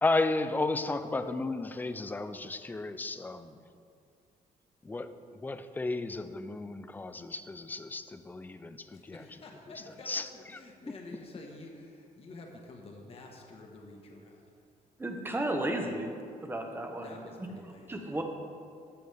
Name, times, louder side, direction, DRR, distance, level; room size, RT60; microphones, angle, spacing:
voice 1, 0.0-3.6 4.8-5.1 5.4-9.2 10.1-10.3, left 3 dB, 10° left, 10 dB, 0.4 m, -33 dB
voice 2, 8.9-14.5 17.0-18.2, left 2 dB, 45° left, 1 dB, 1.3 m, -49 dB
voice 3, 15.0-17.2 17.9-18.2, right 1 dB, 15° right, 3 dB, 1.0 m, -34 dB
14.0 x 7.1 x 3.5 m, 2.4 s
cardioid pair, 145°, 14 cm